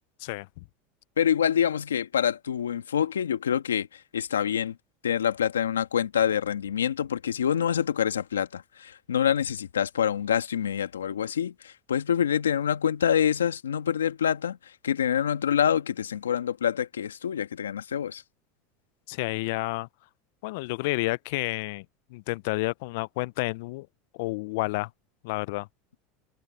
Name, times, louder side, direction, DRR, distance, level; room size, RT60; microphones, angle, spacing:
voice 1, 0.2-0.6 19.1-19.9 20.4-21.8 22.1-23.9 24.1-24.9 25.2-25.7, left 23 dB, 70° left, 0.5 m, -30 dB
voice 2, 1.2-3.9 4.1-4.8 5.0-14.6 14.8-18.2, left 8 dB, 90° left, 1.6 m, -26 dB
hypercardioid pair, 85°, 0 cm